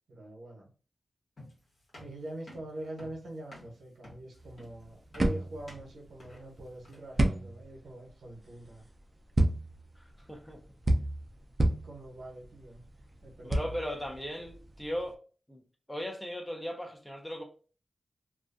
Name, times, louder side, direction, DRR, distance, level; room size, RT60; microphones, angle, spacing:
voice 1, 0.1-0.7 2.0-8.8 11.7-12.8 13.2-13.7, right 1 dB, 85° right, 0.8 m, -44 dB
sound 1, 1.4-7.2, left 1 dB, 65° left, 1.1 m, -52 dB
sound 2, 4.4-15.1, right 1 dB, 35° right, 0.4 m, -32 dB
voice 2, 10.0-10.6 13.4-15.2 15.5-15.6 15.9-17.4, equal, 10° left, 0.6 m, -37 dB
2.3 x 2.2 x 2.5 m
cardioid pair, 40°, 0 cm